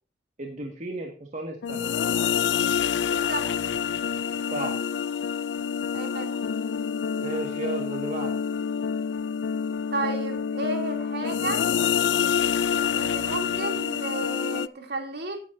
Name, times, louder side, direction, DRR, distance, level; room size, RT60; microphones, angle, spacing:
voice 1, 0.4-1.9 4.5-4.7 7.2-8.3, right 2 dB, 45° right, 2 dB, 1.8 m, -33 dB
sound 1, 1.6-14.7, left 7 dB, 85° left, 0.4 m, -27 dB
voice 2, 3.1-3.5 5.9-6.3 9.9-11.6 12.9-15.4, right 2 dB, 65° right, 3 dB, 3.0 m, -32 dB
16.0 x 9.4 x 2.7 m, 0.38 s
head